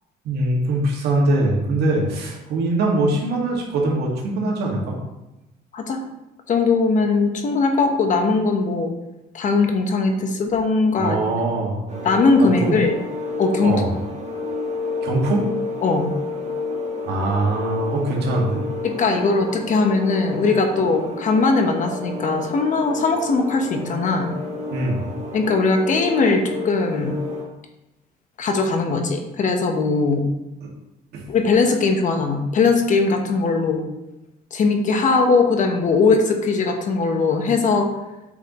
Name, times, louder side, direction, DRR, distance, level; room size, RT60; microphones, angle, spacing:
voice 1, 0.2-5.0 11.0-12.0 12.4-12.8 13.6-13.9 15.0-15.5 17.0-18.6 24.7-25.0 30.6-30.7 31.1-31.3, right 2 dB, 75° right, -2 dB, 1.9 m, -22 dB
voice 2, 6.5-8.9 9.3-11.2 12.0-12.9 13.4-13.8 15.8-16.1 19.0-24.3 25.3-27.1 28.4-30.2 31.3-33.8 34.5-37.9, left 4 dB, 50° left, 4 dB, 1.1 m, -20 dB
sound 1, 11.9-27.4, left 3 dB, 40° right, 1.4 m, -30 dB
8.2 x 5.5 x 3.1 m, 0.97 s
cardioid pair, 110°, 17 cm